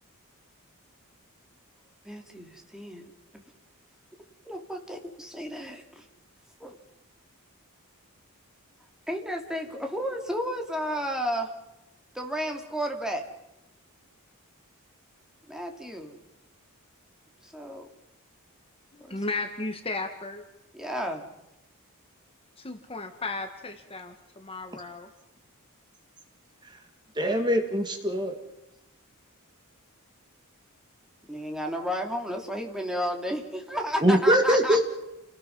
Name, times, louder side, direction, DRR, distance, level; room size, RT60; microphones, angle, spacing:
voice 1, 2.0-3.0 4.4-6.0 6.6-6.8 9.1-11.5 12.1-13.2 15.5-16.2 17.4-17.9 19.1-19.2 20.7-21.2 31.3-34.8, equal, 5° right, 2 dB, 3.0 m, -32 dB
voice 2, 18.9-20.4 22.6-25.1, left 3 dB, 25° left, 6 dB, 1.7 m, -35 dB
voice 3, 27.2-28.4 34.0-34.8, equal, 20° right, 5 dB, 2.0 m, -22 dB
29.5 x 19.5 x 5.5 m, 0.94 s
head